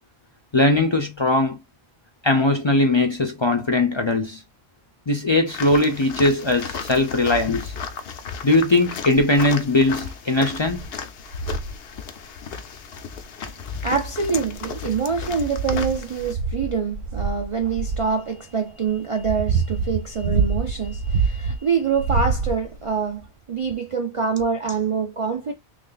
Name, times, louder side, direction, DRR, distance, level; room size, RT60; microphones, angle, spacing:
voice 1, 0.5-1.6 2.2-4.4 5.1-7.7 8.4-10.9, left 2 dB, 35° left, 0.5 m, -20 dB
sound 1, 5.5-16.3, left 6 dB, 65° left, 0.8 m, -34 dB
sound 2, 9.2-9.5 10.1-10.2 10.6-10.8 11.3-11.8 13.2-13.3 14.1-14.8 15.3-18.1 18.8-21.6 21.9-22.9 23.7-23.8, right 5 dB, 80° right, 0.9 m, -26 dB
voice 2, 13.8-25.5, right 5 dB, 50° right, 0.4 m, -25 dB
3.2 x 2.5 x 3.8 m
omnidirectional pair, 1.1 m